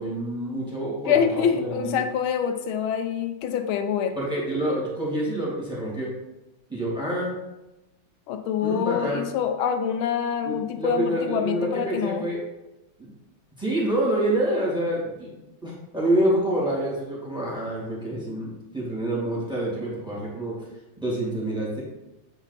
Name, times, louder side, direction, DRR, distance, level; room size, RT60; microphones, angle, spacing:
voice 1, 0.0-2.0 4.2-6.1 6.7-7.4 8.6-9.2 10.4-12.4 13.0-13.1 13.6-20.6 21.0-21.8, right 1 dB, ahead, -6 dB, 2.3 m, -27 dB
voice 2, 1.1-4.1 8.3-12.2, left 8 dB, 80° left, 7 dB, 1.5 m, -25 dB
7.9 x 4.5 x 4.1 m, 0.97 s
omnidirectional pair, 2.3 m